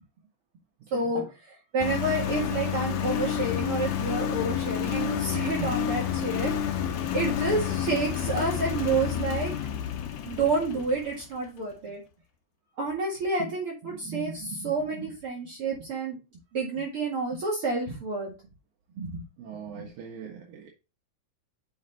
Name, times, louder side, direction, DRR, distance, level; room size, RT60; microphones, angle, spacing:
voice 1, 0.9-6.8 7.1-9.5 10.2-12.0 12.8-16.2 16.5-18.3 19.0-19.2 19.7-19.8, right 3 dB, 45° right, -3 dB, 2.3 m, -29 dB
Engine, 1.8-11.2, left 9 dB, 70° left, 2.3 m, -29 dB
voice 2, 19.4-20.7, right 7 dB, 80° right, -2 dB, 3.3 m, -42 dB
7.0 x 5.5 x 4.0 m, 0.29 s
omnidirectional pair, 4.1 m